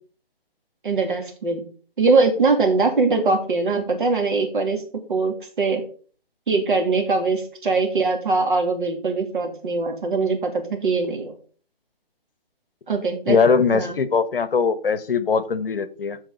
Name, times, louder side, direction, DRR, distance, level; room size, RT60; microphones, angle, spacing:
voice 1, 0.8-1.6 2.0-4.8 5.1-5.8 6.5-11.3 12.9-13.4 13.7-14.0, right 3 dB, 55° right, 4 dB, 2.7 m, -22 dB
voice 2, 13.3-16.2, left 5 dB, 65° left, 14 dB, 1.1 m, -20 dB
14.0 x 5.0 x 3.9 m, 0.41 s
hypercardioid pair, 170°, 30 cm